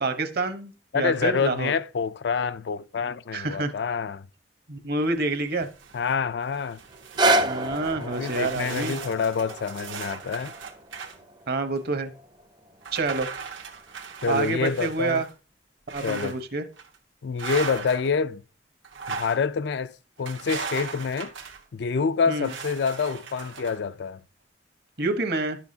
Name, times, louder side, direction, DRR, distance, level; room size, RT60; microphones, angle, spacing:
voice 1, 0.0-1.7 3.3-3.7 4.7-5.7 7.4-9.0 11.5-12.1 12.9-13.3 14.3-15.3 15.9-16.6 22.3-22.5 25.0-25.6, right 3 dB, 55° right, 1.0 m, -27 dB
voice 2, 0.9-4.2 5.9-6.8 8.0-10.5 14.2-15.2 16.0-16.3 17.2-18.4 19.1-21.3 21.7-24.2, left 5 dB, 65° left, 0.4 m, -27 dB
sound 1, 5.2-6.1 6.5-11.2 11.8-11.9 12.8-15.3 15.9-16.4 16.8-17.0 17.4-18.1 18.8-19.4 20.2-21.6 22.4-23.8, right 5 dB, 90° right, 1.3 m, -38 dB
sound 2, 6.9-13.0 13.7-13.8, right 1 dB, 25° right, 0.5 m, -29 dB
11.0 x 7.0 x 2.8 m
head